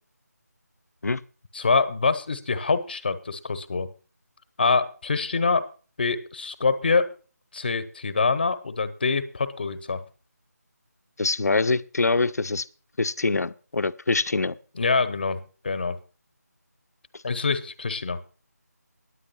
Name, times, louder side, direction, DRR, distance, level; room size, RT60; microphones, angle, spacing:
voice 1, 1.5-3.9 4.6-5.7 6.0-7.1 7.5-10.0 14.8-16.0 17.2-18.2, left 4 dB, 35° left, 12 dB, 0.9 m, -25 dB
voice 2, 11.2-12.7 13.0-14.6 17.1-17.2, left 3 dB, 65° left, 14 dB, 0.6 m, -24 dB
9.9 x 8.8 x 5.5 m, 0.36 s
figure-of-eight pair, 170°, 9 cm